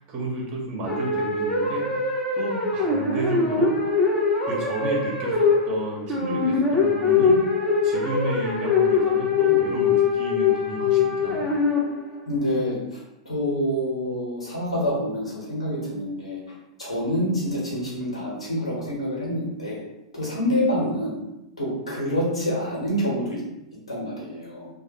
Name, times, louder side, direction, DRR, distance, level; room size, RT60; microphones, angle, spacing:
voice 1, 0.0-2.0 2.4-3.7 4.5-7.5 7.8-11.6, right 1 dB, 35° right, -2 dB, 0.9 m, -31 dB
sound 1, 0.9-12.2, left 5 dB, 10° left, 0.6 m, -22 dB
voice 2, 12.3-19.8 20.1-21.3 21.6-23.4 23.9-24.7, equal, 85° left, -4 dB, 1.0 m, -27 dB
2.3 x 2.1 x 2.8 m, 0.91 s
hypercardioid pair, 105°, 3 cm